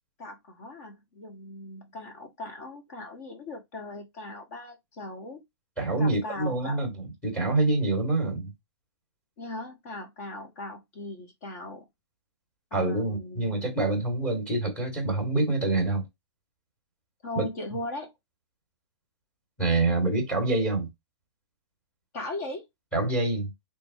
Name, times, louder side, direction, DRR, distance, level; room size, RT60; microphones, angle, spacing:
voice 1, 0.2-5.4 6.0-6.9 9.4-11.8 12.7-13.7 17.2-18.1 22.1-22.6, left 2 dB, 30° left, 1.5 m, -38 dB
voice 2, 5.8-8.5 12.7-16.0 17.4-17.5 19.6-20.9 22.9-23.5, right 2 dB, 10° left, 2.0 m, -26 dB
4.1 x 3.4 x 2.9 m
hypercardioid pair, 175°, 15 cm